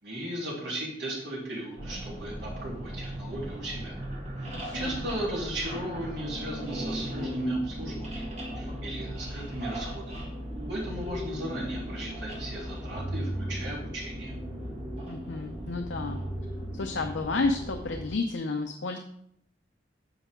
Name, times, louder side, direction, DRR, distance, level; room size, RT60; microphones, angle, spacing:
voice 1, 0.0-4.0 4.4-8.2 8.5-10.2 10.7-14.3, right 1 dB, 65° right, -4 dB, 3.5 m, -36 dB
sound 1, 1.8-18.1, equal, 35° right, 1.6 m, -37 dB
voice 2, 4.4-5.1 15.1-16.2 16.7-19.0, left 3 dB, 75° left, 4 dB, 0.7 m, -31 dB
9.7 x 6.6 x 3.7 m, 0.71 s
head